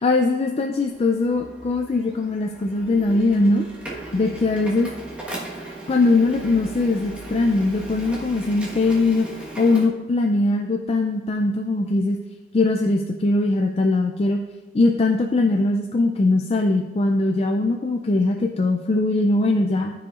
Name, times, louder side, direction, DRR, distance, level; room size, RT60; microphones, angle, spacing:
voice 1, 0.0-3.6 4.1-4.9 5.9-9.3 9.6-12.2 12.5-14.4 14.7-19.9, left 2 dB, 35° left, 3 dB, 0.4 m, -21 dB
Printer, 0.7-9.9, right 2 dB, 5° right, 1.3 m, -37 dB
13.0 x 4.9 x 2.4 m, 1.2 s
head